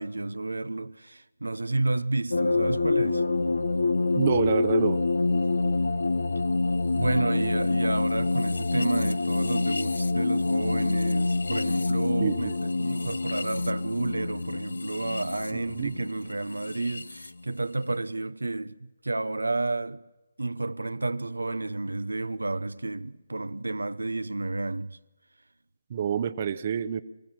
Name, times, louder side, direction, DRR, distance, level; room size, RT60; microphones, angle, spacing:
voice 1, 0.0-3.2 6.9-20.0 20.4-25.0, right 2 dB, 90° right, 0.6 m, -31 dB
sound 1, 2.3-17.3, left 3 dB, 75° left, 0.9 m, -27 dB
voice 2, 4.1-5.0 12.2-12.5 15.5-15.9 25.9-27.0, right 8 dB, 40° right, 0.7 m, -27 dB
23.5 x 15.0 x 7.3 m
figure-of-eight pair, 155°, 0 cm